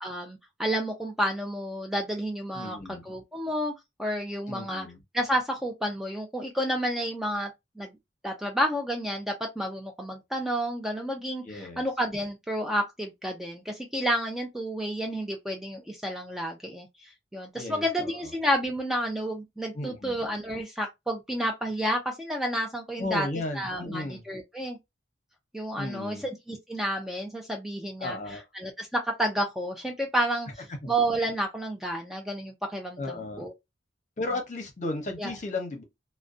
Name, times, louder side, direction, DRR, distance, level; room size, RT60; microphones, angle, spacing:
voice 1, 0.0-3.7 4.0-4.9 5.1-7.5 7.8-7.9 8.2-23.3 23.5-24.8 25.5-30.5 30.9-33.5 35.2-35.3, equal, ahead, 0.4 m, -30 dB
voice 2, 2.5-3.1 4.5-5.0 11.4-11.9 17.5-18.1 19.7-20.1 23.0-24.2 25.8-26.2 28.0-28.4 30.8-30.9 33.0-33.5 34.2-35.8, left 2 dB, 45° left, 0.7 m, -34 dB
2.5 x 2.1 x 2.4 m
head